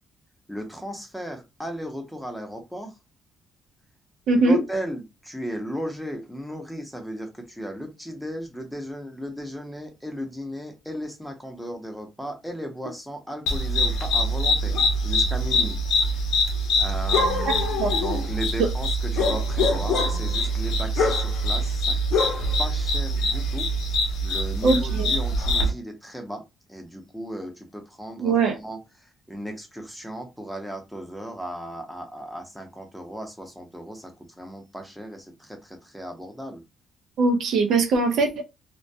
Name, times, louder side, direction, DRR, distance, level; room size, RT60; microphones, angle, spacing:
voice 1, 0.5-3.0 4.3-14.8 15.0-15.8 16.1-16.2 16.8-22.0 22.6-23.7 24.2-26.4 26.7-36.6, equal, ahead, 0.7 m, -36 dB
voice 2, 4.3-4.6 17.8-17.9 18.6-18.7 24.6-25.1 28.2-28.6 37.2-38.4, right 3 dB, 70° right, 0.5 m, -21 dB
sound 1, 13.5-25.7, left 1 dB, 85° left, 0.6 m, -24 dB
2.2 x 2.1 x 2.7 m
cardioid pair, 90°, 0 cm